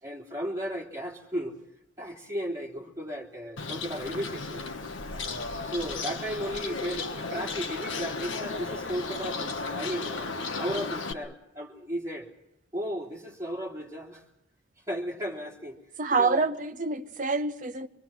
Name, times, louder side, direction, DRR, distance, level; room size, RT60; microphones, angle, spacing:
voice 1, 0.0-1.5 2.0-4.6 5.6-10.3 10.6-12.3 12.7-14.2 14.9-15.8 16.2-16.5, equal, 15° right, 3.6 m, -35 dB
Bird, 3.6-11.1, left 3 dB, 80° left, 1.2 m, -34 dB
voice 2, 16.0-17.9, right 4 dB, 40° right, 0.9 m, -27 dB
26.0 x 22.5 x 6.1 m
head